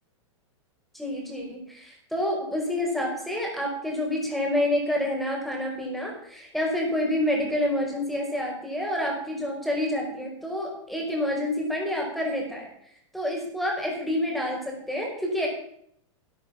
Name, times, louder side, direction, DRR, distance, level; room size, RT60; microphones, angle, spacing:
voice 1, 0.9-12.7 13.1-15.5, left 1 dB, ahead, -1 dB, 5.2 m, -28 dB
12.0 x 11.5 x 5.9 m, 0.69 s
hypercardioid pair, 125°, 16 cm